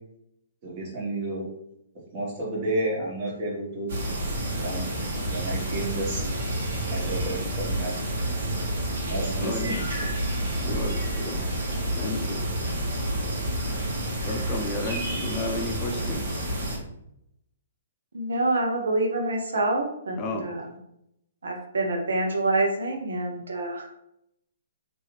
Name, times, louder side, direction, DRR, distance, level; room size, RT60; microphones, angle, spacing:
voice 1, 0.6-1.5 2.1-3.9 4.6-4.9 5.3-6.2 6.9-7.9 9.1-9.8 10.6-10.7, right 1 dB, 40° right, -3 dB, 1.4 m, -31 dB
sound 1, 3.9-16.8, right 1 dB, 60° right, 1.3 m, -29 dB
voice 2, 10.6-11.4 11.9-12.4 14.2-16.2 20.2-20.5, left 2 dB, 30° left, 3 dB, 0.5 m, -32 dB
voice 3, 18.1-20.7 21.4-23.9, right 2 dB, 80° right, 2 dB, 0.7 m, -26 dB
3.1 x 2.6 x 3.2 m, 0.77 s
hypercardioid pair, 135°, 0 cm